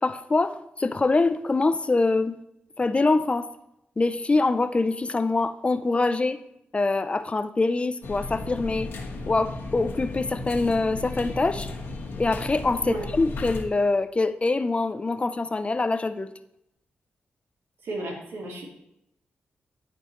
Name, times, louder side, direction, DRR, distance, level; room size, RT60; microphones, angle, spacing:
voice 1, 0.0-2.4 2.8-3.5 4.0-6.4 6.7-8.9 9.3-11.7 12.2-16.3, left 3 dB, 30° left, 0.4 m, -24 dB
sound 1, 8.0-13.6, left 2 dB, 75° left, 1.4 m, -35 dB
voice 2, 17.8-18.7, right 2 dB, 85° right, 2.1 m, -34 dB
12.5 x 4.4 x 3.0 m
cardioid pair, 70°, 4 cm